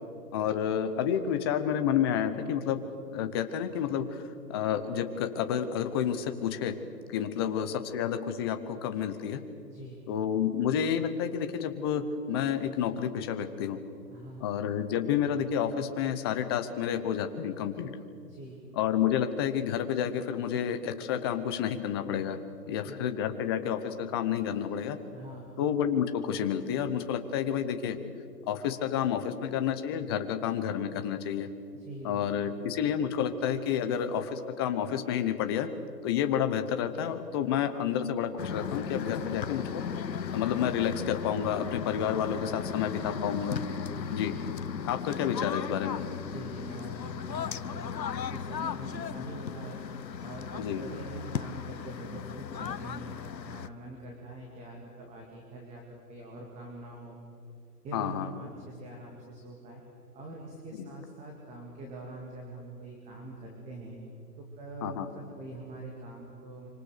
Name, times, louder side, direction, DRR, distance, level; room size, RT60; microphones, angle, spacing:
voice 1, 0.3-2.8 3.1-4.2 4.5-6.7 7.1-9.4 10.1-13.8 14.4-17.9 18.7-22.4 22.7-25.0 25.6-28.0 28.5-31.5 32.0-35.7 36.0-39.8 40.3-43.6 44.1-44.3 44.9-46.0 50.6-50.8 57.9-58.3 60.7-60.9 64.8-65.1, left 9 dB, 15° left, 8 dB, 0.8 m, -30 dB
voice 2, 9.7-10.0 14.1-14.5 18.3-18.6 22.6-23.1 25.1-25.5 31.7-32.3 43.8-44.2 46.3-49.8 50.2-57.2 57.8-59.8 60.1-64.0 64.4-66.7, right 1 dB, 15° right, 0 dB, 2.4 m, -44 dB
sound 1, 38.4-53.7, left 7 dB, 85° left, 1.1 m, -36 dB
26.0 x 25.5 x 6.7 m, 2.4 s
hypercardioid pair, 150°, 49 cm